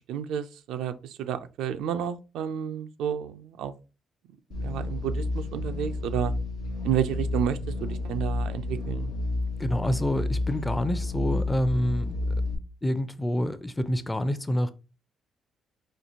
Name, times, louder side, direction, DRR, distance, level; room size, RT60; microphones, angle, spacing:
voice 1, 0.1-3.7 4.5-6.3 6.8-9.1, right 9 dB, 90° right, 0.3 m, -31 dB
sound 1, 4.5-12.6, left 2 dB, 90° left, 0.8 m, -30 dB
voice 2, 9.6-12.1 12.8-14.7, left 1 dB, 15° left, 0.4 m, -27 dB
4.4 x 2.4 x 2.7 m
cardioid pair, 90°, 0 cm